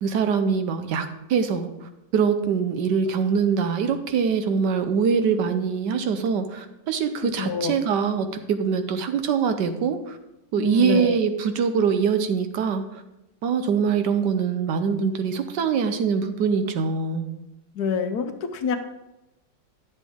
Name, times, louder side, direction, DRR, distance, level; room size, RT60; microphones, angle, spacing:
voice 1, 0.0-10.2 10.5-13.0 13.4-17.2, right 6 dB, 75° right, 8 dB, 1.4 m, -23 dB
voice 2, 7.4-7.7 10.6-11.2 17.8-18.8, left 6 dB, 70° left, 8 dB, 1.2 m, -26 dB
10.5 x 7.3 x 3.6 m, 0.93 s
omnidirectional pair, 1.9 m